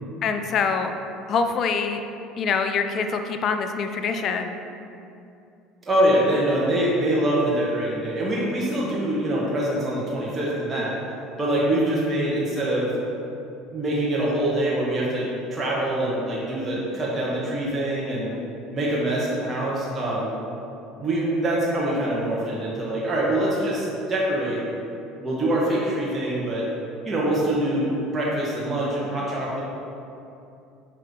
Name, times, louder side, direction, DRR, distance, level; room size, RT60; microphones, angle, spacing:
voice 1, 0.2-0.9 1.3-2.0 2.4-4.6 18.3-18.5, left 5 dB, 50° left, 7 dB, 0.5 m, -25 dB
voice 2, 5.8-10.9 11.4-12.9 13.7-18.3 18.7-20.4 21.0-24.6 25.2-26.6 27.0-29.6, right 1 dB, 25° right, -6 dB, 1.4 m, -24 dB
5.5 x 5.3 x 3.7 m, 2.7 s
supercardioid pair, 90°, 0 cm